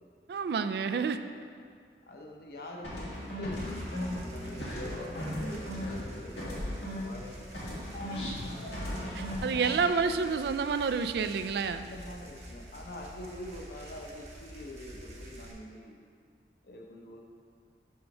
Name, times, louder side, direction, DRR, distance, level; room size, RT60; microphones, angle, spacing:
voice 1, 0.3-1.2 8.1-8.3 9.1-11.9, right 5 dB, 65° right, 10 dB, 0.3 m, -29 dB
voice 2, 2.1-9.2 11.4-16.0 16.6-17.2, left 1 dB, 55° left, 1 dB, 0.8 m, -46 dB
sound 1, 2.8-7.3 7.5-9.9, left 1 dB, 85° left, 1.8 m, -36 dB
sound 2, 3.5-15.5, right 1 dB, 40° right, 1.0 m, -48 dB
5.6 x 5.5 x 5.4 m, 2.2 s
head